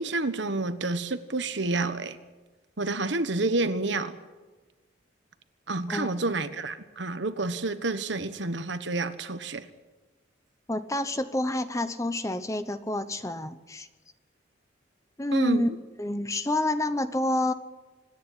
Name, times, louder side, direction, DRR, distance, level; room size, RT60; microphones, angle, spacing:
voice 1, 0.0-2.2 2.8-4.1 5.7-9.7 15.3-15.7, right 2 dB, 70° right, 11 dB, 1.3 m, -29 dB
voice 2, 10.7-13.9 15.2-15.7 16.0-17.5, left 1 dB, 15° left, 11 dB, 0.9 m, -28 dB
26.0 x 10.5 x 9.8 m, 1.2 s
head